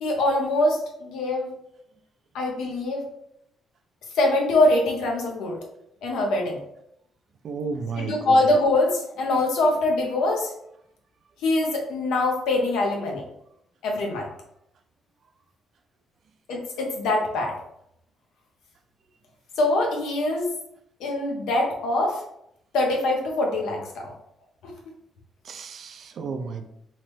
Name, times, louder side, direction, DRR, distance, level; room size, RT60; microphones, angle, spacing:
voice 1, 0.0-1.5 2.3-3.0 4.2-5.6 6.0-6.6 8.0-10.5 11.4-13.2 13.8-14.3 16.5-17.5 19.6-20.5 21.0-22.2 22.7-23.8 24.6-24.7, left 2 dB, 85° left, 1 dB, 0.7 m, -23 dB
voice 2, 7.4-8.3 25.5-26.7, right 4 dB, 60° right, 6 dB, 0.4 m, -32 dB
3.1 x 2.0 x 3.1 m, 0.76 s
cardioid pair, 90°, 0 cm